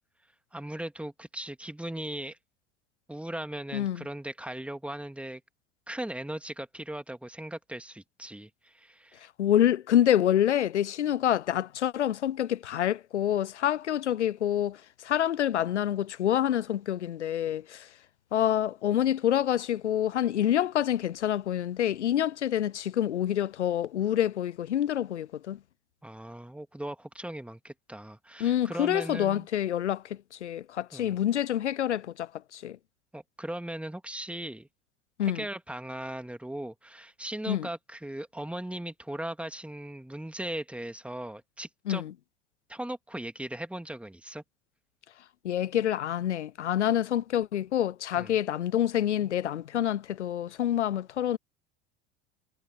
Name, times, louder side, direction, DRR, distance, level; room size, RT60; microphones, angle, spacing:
voice 1, 0.5-2.4 3.1-5.4 5.9-9.3 26.0-29.5 30.9-31.1 33.1-34.7 35.2-42.0 42.7-44.4 48.2-48.3, right 1 dB, 5° right, 2.3 m, -38 dB
voice 2, 3.7-4.0 9.4-17.9 18.3-25.6 28.4-32.8 35.2-35.4 37.5-37.7 41.9-42.1 45.4-51.4, left 11 dB, 85° left, 0.5 m, -27 dB
figure-of-eight pair, 70°, 34 cm